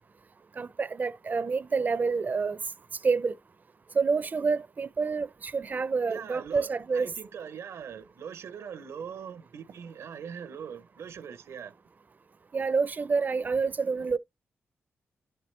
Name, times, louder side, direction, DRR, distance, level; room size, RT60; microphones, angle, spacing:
voice 1, 0.6-2.6 3.0-3.3 3.9-7.1 12.5-14.2, right 4 dB, 40° right, 0.5 m, -28 dB
voice 2, 6.1-11.8, right 7 dB, 80° right, 0.6 m, -41 dB
11.0 x 4.4 x 3.2 m
cardioid pair, 80°, 5 cm